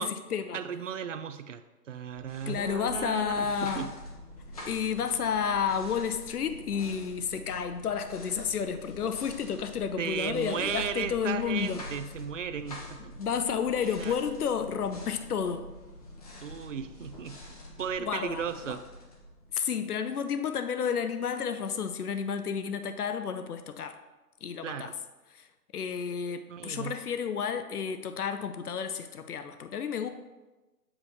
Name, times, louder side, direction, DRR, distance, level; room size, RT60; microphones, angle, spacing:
voice 1, 0.0-0.6 2.5-3.9 4.7-11.8 13.2-15.7 18.0-18.8 19.5-24.0 24.4-24.9 25.3-25.5 25.7-30.1, left 7 dB, 70° left, 9 dB, 0.8 m, -31 dB
voice 2, 0.5-1.6 1.9-3.9 10.0-13.2 13.8-14.2 16.4-17.5 17.8-18.8 24.6-24.9 26.5-27.0, right 7 dB, 55° right, 10 dB, 0.5 m, -35 dB
sound 1, 2.0-19.8, left 1 dB, 25° left, 0.8 m, -46 dB
7.3 x 4.9 x 4.1 m, 1.1 s
hypercardioid pair, 155°, 47 cm